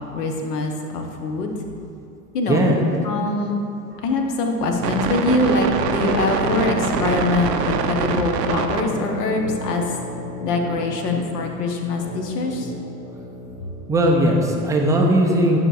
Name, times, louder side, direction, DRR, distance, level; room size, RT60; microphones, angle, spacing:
voice 1, 0.0-1.6 2.3-2.8 3.0-3.6 4.0-9.8 10.4-12.7, left 2 dB, 70° left, 3 dB, 1.0 m, -23 dB
sound 1, 4.7-14.6, left 3 dB, 15° left, 0.8 m, -34 dB
sound 2, 4.8-8.8, right 7 dB, 75° right, 0.6 m, -24 dB
voice 2, 13.9-15.6, right 1 dB, 10° right, 0 dB, 0.3 m, -18 dB
9.9 x 5.8 x 2.4 m, 2.6 s
hypercardioid pair, 80°, 49 cm